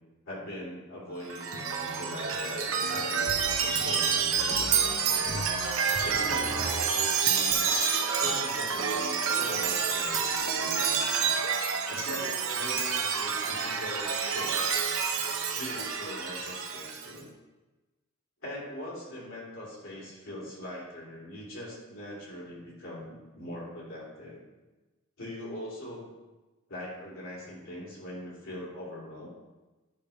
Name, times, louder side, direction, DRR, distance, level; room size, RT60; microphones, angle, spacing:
voice 1, 0.3-5.4 6.0-7.6 8.1-11.3 11.9-14.8 15.5-17.3 18.4-24.4 25.2-26.1 26.7-29.3, left 1 dB, 65° left, -6 dB, 3.0 m, -41 dB
Chime, 1.2-17.1, right 6 dB, 70° right, 0.9 m, -28 dB
10.0 x 3.5 x 5.7 m, 1.1 s
head